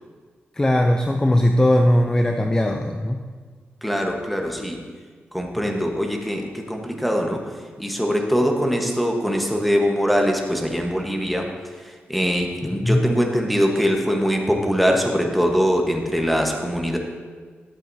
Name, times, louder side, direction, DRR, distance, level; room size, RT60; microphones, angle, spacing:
voice 1, 0.6-3.2 12.8-13.1, left 1 dB, 15° left, 4 dB, 0.5 m, -19 dB
voice 2, 3.8-4.8 5.3-7.4 7.8-11.5 11.8-17.0, equal, ahead, 2 dB, 1.2 m, -22 dB
12.0 x 7.5 x 2.7 m, 1.5 s
cardioid pair, 80°, 4 cm